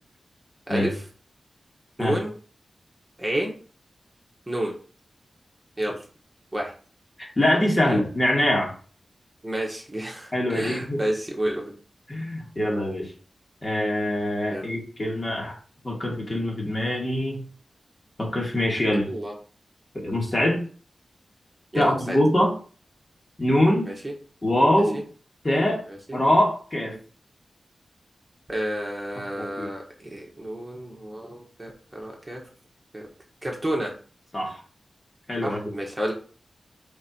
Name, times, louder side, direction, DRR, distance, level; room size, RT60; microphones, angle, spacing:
voice 1, 0.7-1.0 2.0-2.3 3.2-3.5 4.5-4.7 5.8-6.0 6.5-6.7 7.8-8.0 9.4-11.7 14.5-14.7 19.1-19.3 20.4-20.5 21.7-22.2 23.9-24.0 24.9-25.0 25.9-26.2 28.5-32.4 32.9-33.1 33.4-33.9 35.4-36.1, right 1 dB, 15° right, -1 dB, 1.6 m, -30 dB
voice 2, 7.2-8.7 10.3-11.0 12.1-13.1 13.6-15.5 15.8-17.4 18.2-19.1 19.9-20.6 21.7-22.5 23.4-23.9 24.4-25.0 25.4-25.8 26.1-27.0 29.2-29.7 34.3-34.6 35.3-35.6, left 1 dB, 30° left, -1 dB, 2.3 m, -23 dB
4.7 x 4.6 x 4.5 m, 0.40 s
wide cardioid pair, 80°, 0 cm